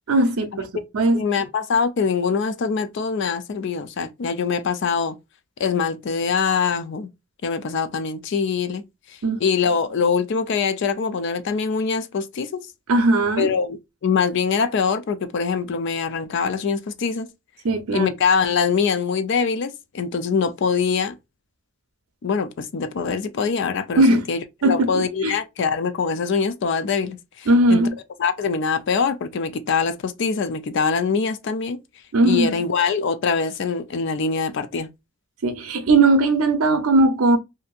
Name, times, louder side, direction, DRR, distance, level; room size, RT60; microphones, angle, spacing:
voice 1, 0.1-0.7 0.9-1.2 9.2-9.4 12.9-13.5 17.6-18.1 24.0-24.2 24.6-25.4 27.5-28.0 32.1-32.6 35.4-37.4, right 2 dB, 80° right, 0.6 m, -18 dB
voice 2, 1.1-5.2 5.6-7.1 7.4-8.8 9.4-12.6 13.4-17.3 17.9-21.2 22.2-27.8 28.2-31.8 32.2-34.9, left 5 dB, 55° left, 0.3 m, -23 dB
2.7 x 2.5 x 2.3 m
head